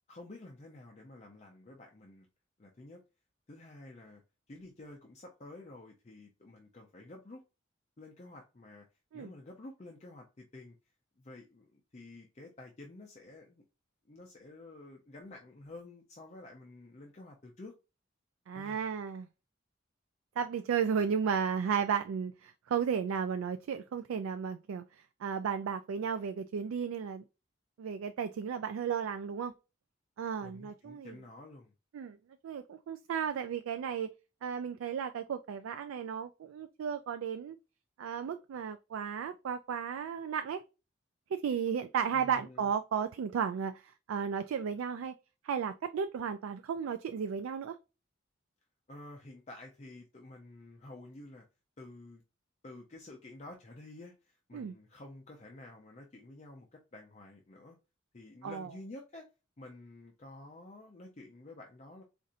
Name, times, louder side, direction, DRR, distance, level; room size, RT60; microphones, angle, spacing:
voice 1, 0.1-2.3 2.6-3.0 3.5-4.2 4.5-7.4 8.0-8.9 9.1-10.8 11.2-13.6 14.0-17.7 18.5-19.0 30.4-31.7 42.1-42.7 48.9-51.4 51.8-52.2 52.6-57.8 58.1-59.3 59.6-62.0, left 2 dB, 35° left, 0.5 m, -50 dB
voice 2, 18.5-19.3 20.4-24.8 25.2-27.2 27.8-29.5 30.2-31.2 31.9-32.2 32.4-34.1 34.4-37.6 38.0-40.6 41.3-45.1 45.4-47.8 54.5-54.7 58.4-58.7, right 7 dB, 90° right, 0.3 m, -34 dB
4.2 x 2.5 x 2.5 m
head